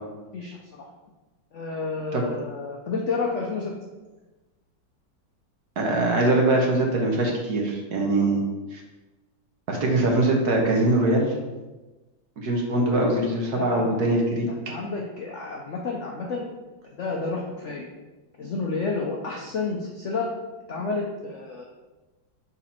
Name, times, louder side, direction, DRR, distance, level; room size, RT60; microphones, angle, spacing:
voice 1, 1.5-3.7 13.5-13.9 14.5-16.5 17.0-17.8 18.4-20.3 20.7-21.6, left 4 dB, 65° left, -1 dB, 0.7 m, -30 dB
voice 2, 5.8-8.4 8.7-8.8 9.7-11.3 12.4-14.5, right 2 dB, 60° right, 0 dB, 1.5 m, -22 dB
6.3 x 4.2 x 4.3 m, 1.2 s
omnidirectional pair, 2.1 m